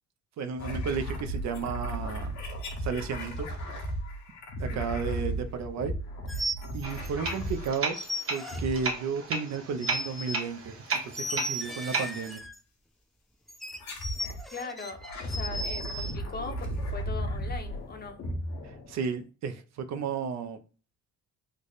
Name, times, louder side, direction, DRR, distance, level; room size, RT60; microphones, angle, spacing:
voice 1, 0.4-2.4 2.8-3.5 4.6-5.9 6.7-10.7 11.0-12.4 18.9-20.6, right 5 dB, 65° right, 0.5 m, -33 dB
sound 1, 0.6-8.0 8.4-9.2 10.9-11.3 12.3-12.5 13.6-14.4 14.9-19.2, right 1 dB, 65° left, 1.0 m, -35 dB
sound 2, 6.3-7.4 7.7-8.8 9.5-10.4 11.1-12.6 13.5-16.1, equal, ahead, 0.4 m, -36 dB
sound 3, 6.8-12.3, right 3 dB, 45° right, 1.0 m, -35 dB
voice 2, 14.5-18.2, left 4 dB, 30° left, 0.7 m, -40 dB
3.3 x 2.1 x 3.9 m
cardioid pair, 90°, 30 cm